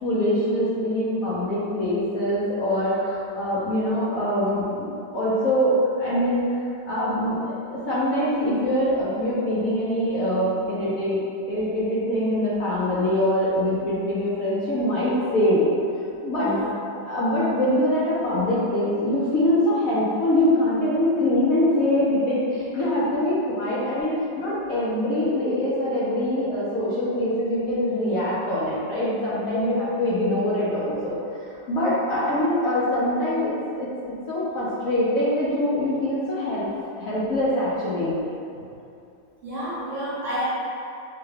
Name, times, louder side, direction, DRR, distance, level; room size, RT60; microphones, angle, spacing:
voice 1, 0.0-6.4 6.9-15.6 16.2-16.5 16.8-31.2 31.7-33.9 34.3-36.7 37.0-38.1 38.5-38.6, left 1 dB, 65° left, -8 dB, 0.9 m, -23 dB
voice 2, 16.4-16.7 39.4-40.4, equal, 50° right, -10 dB, 1.1 m, -30 dB
4.5 x 2.2 x 3.2 m, 2.6 s
omnidirectional pair, 1.9 m